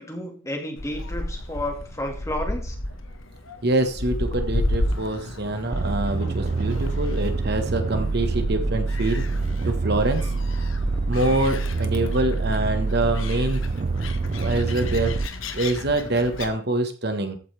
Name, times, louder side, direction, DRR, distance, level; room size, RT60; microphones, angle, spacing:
voice 1, 0.0-2.8, left 1 dB, 15° left, 3 dB, 2.1 m, -31 dB
Gull seagull, 0.8-16.5, left 1 dB, 80° left, 1.6 m, -33 dB
voice 2, 3.6-9.2 9.6-10.3 11.1-13.6 14.4-15.1 15.5-17.4, right 2 dB, 55° right, 7 dB, 1.5 m, -25 dB
sound 1, 5.7-15.3, right 3 dB, 40° right, 0.4 m, -26 dB
14.5 x 9.0 x 3.5 m, 0.39 s
head